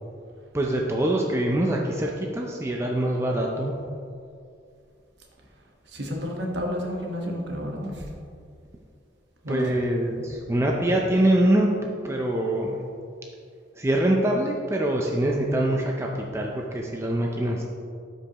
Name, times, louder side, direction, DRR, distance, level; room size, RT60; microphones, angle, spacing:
voice 1, 0.5-3.8 9.5-12.9 13.8-17.6, right 1 dB, 15° right, -1 dB, 0.5 m, -24 dB
voice 2, 5.9-8.1 9.4-9.7, equal, 60° right, 0 dB, 1.2 m, -31 dB
12.5 x 5.3 x 2.9 m, 2.4 s
head